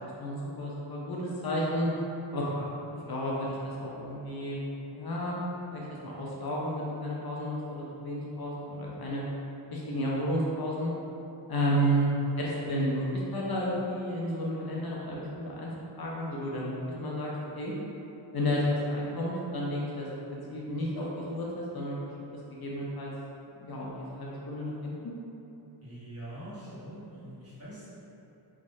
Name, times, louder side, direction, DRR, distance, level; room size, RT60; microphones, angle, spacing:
voice 1, 0.0-1.9 2.3-4.6 4.9-5.4 5.7-9.2 9.7-10.9 11.5-12.1 12.4-15.7 16.0-17.7 18.3-20.1 20.5-22.0 22.5-23.1 23.6-24.9, equal, 55° left, -5 dB, 0.6 m, -32 dB
voice 2, 25.8-28.0, right 1 dB, 30° right, -12 dB, 1.4 m, -44 dB
3.5 x 3.0 x 2.6 m, 2.9 s
wide cardioid pair, 100°, 46 cm